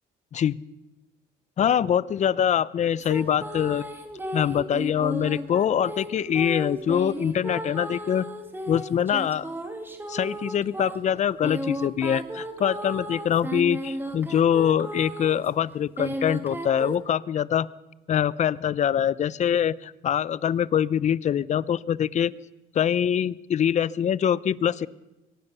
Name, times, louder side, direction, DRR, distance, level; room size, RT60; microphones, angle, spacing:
voice 1, 1.6-3.8 4.3-8.2 8.7-9.5 10.1-17.7 18.1-22.3 22.7-24.9, left 9 dB, 45° left, 19 dB, 0.7 m, -24 dB
sound 1, 3.0-15.5 16.0-16.9, right 1 dB, 10° right, 2.6 m, -34 dB
23.0 x 18.5 x 6.8 m, 0.98 s
cardioid pair, 110°, 17 cm